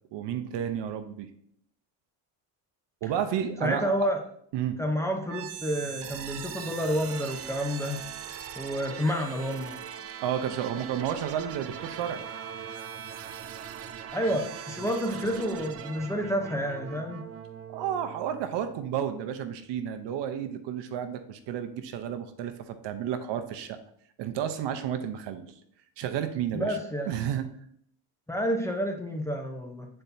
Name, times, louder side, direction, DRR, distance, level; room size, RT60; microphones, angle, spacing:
voice 1, 0.1-1.3 3.0-4.1 4.5-4.8 10.2-12.2 17.7-23.8 24.2-25.5 26.0-26.8 27.1-27.5, right 9 dB, 70° right, 8 dB, 0.8 m, -31 dB
voice 2, 3.6-4.2 4.8-8.0 8.6-9.8 14.1-17.2 26.5-27.1 28.3-29.9, equal, 5° left, 2 dB, 0.8 m, -29 dB
sound 1, 5.3-19.2, right 8 dB, 35° right, 0.4 m, -41 dB
8.7 x 4.4 x 2.7 m, 0.66 s
cardioid pair, 125°, 45 cm